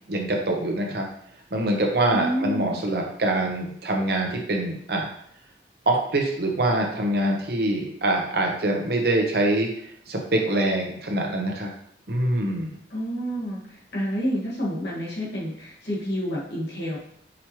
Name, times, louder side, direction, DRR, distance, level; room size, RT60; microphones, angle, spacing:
voice 1, 0.1-1.1 1.5-5.1 5.9-9.7 10.1-11.7 12.1-12.7, right 1 dB, 60° right, 1 dB, 0.8 m, -24 dB
voice 2, 2.1-2.8 12.9-17.0, equal, 80° left, -5 dB, 1.5 m, -29 dB
5.0 x 3.0 x 3.0 m, 0.68 s
head